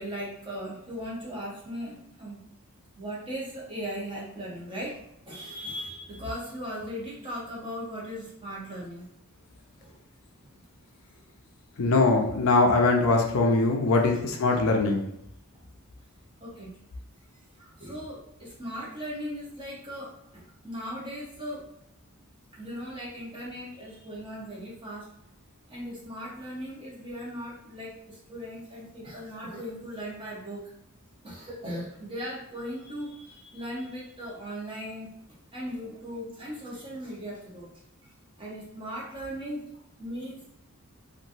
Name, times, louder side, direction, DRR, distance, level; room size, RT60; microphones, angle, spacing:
voice 1, 0.0-2.4 3.0-9.1 9.8-10.0 14.1-14.6 16.4-16.7 17.6-21.6 22.5-25.1 25.7-30.7 31.2-35.1 35.5-37.7 38.4-39.7 40.0-40.5, equal, 25° right, -5 dB, 1.0 m, -38 dB
voice 2, 11.8-15.0, left 3 dB, 65° left, 2 dB, 0.5 m, -22 dB
2.9 x 2.5 x 2.7 m, 0.78 s
head